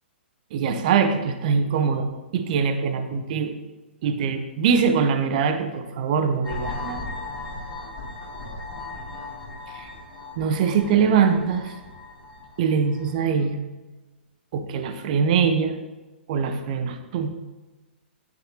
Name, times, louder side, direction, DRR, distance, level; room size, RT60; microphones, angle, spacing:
voice 1, 0.5-3.5 4.0-7.0 9.7-9.9 10.4-11.7 12.6-13.6 14.5-15.8 16.3-17.3, right 6 dB, 40° right, 8 dB, 0.8 m, -23 dB
sound 1, 6.4-13.2, left 3 dB, 45° left, 3.0 m, -37 dB
8.9 x 8.6 x 2.9 m, 1.1 s
figure-of-eight pair, 120°, 6 cm